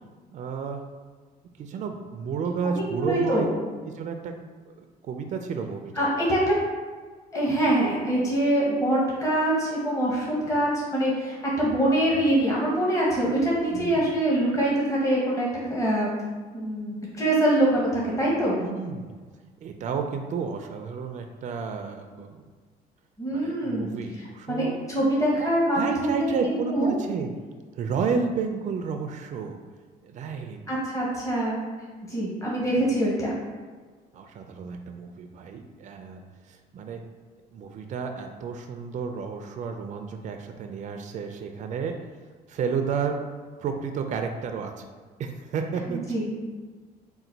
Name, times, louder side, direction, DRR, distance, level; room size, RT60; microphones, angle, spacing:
voice 1, 0.3-0.8 1.6-3.5 3.9-4.3 4.7-6.1 13.7-14.1 18.6-19.2 19.6-22.4 23.3-24.8 25.4-25.5 25.7-27.3 27.7-29.6 30.0-30.6 34.1-36.2 36.5-37.0 37.5-41.9 42.5-43.2 43.6-44.8 45.2-46.0, right 5 dB, 45° right, 5 dB, 0.4 m, -31 dB
voice 2, 2.6-3.5 6.0-6.5 7.3-16.1 16.5-18.6 23.2-24.0 24.5-26.9 30.7-31.6 32.1-33.3 45.9-46.3, right 1 dB, 20° left, -5 dB, 1.1 m, -24 dB
3.9 x 2.2 x 4.4 m, 1.5 s
cardioid pair, 110°, 17 cm